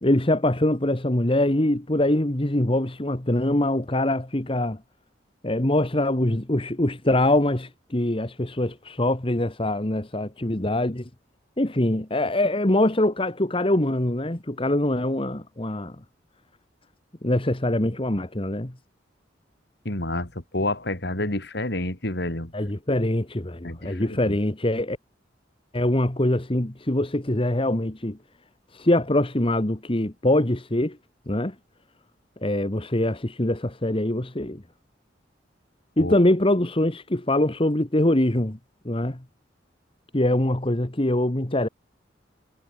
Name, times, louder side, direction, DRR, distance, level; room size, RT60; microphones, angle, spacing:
voice 1, 0.0-4.8 5.4-11.1 11.6-16.0 17.2-18.7 22.5-25.0 25.7-28.2 28.7-31.0 31.3-31.5 32.4-34.6 36.0-38.6 38.8-39.2 40.1-41.7, left 1 dB, 30° left, 1.6 m, -23 dB
voice 2, 19.9-22.5 23.6-24.4 36.0-36.1, left 1 dB, 60° left, 3.7 m, -29 dB
head